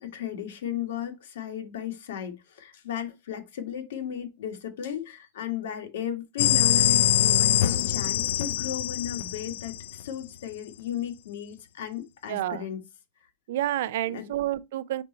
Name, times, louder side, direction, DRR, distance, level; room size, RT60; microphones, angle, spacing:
voice 1, 0.0-12.8 14.1-14.3, left 10 dB, 85° left, 1.8 m, -35 dB
sound 1, 6.4-10.1, left 12 dB, 65° left, 0.4 m, -23 dB
voice 2, 12.3-12.6 13.5-15.0, right 13 dB, 60° right, 0.4 m, -29 dB
5.1 x 4.3 x 4.3 m
supercardioid pair, 180°, 0 cm